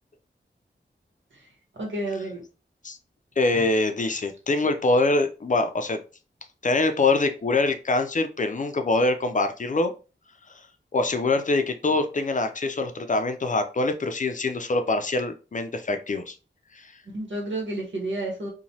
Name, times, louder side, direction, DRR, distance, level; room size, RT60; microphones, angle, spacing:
voice 1, 1.8-2.4 3.5-3.7 17.1-18.5, right 1 dB, 80° right, -1 dB, 1.2 m, -30 dB
voice 2, 3.4-6.0 6.6-9.9 10.9-16.3 16.7-16.9, left 2 dB, 40° left, 7 dB, 0.4 m, -24 dB
3.0 x 2.2 x 2.7 m, 0.33 s
wide cardioid pair, 75°, 19 cm